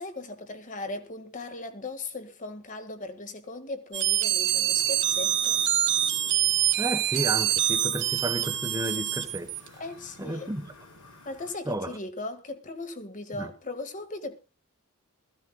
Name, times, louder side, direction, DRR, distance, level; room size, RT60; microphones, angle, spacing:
voice 1, 0.0-5.6 9.8-10.5 11.2-14.4, left 2 dB, 35° left, 1.7 m, -38 dB
sound 1, 3.9-9.7, right 12 dB, 55° right, 1.5 m, -25 dB
sound 2, 4.4-11.5, left 2 dB, 85° left, 5.2 m, -51 dB
voice 2, 6.8-9.5 10.2-10.7 11.7-11.9 13.3-13.5, right 1 dB, 15° right, 1.1 m, -32 dB
21.0 x 15.0 x 2.3 m
head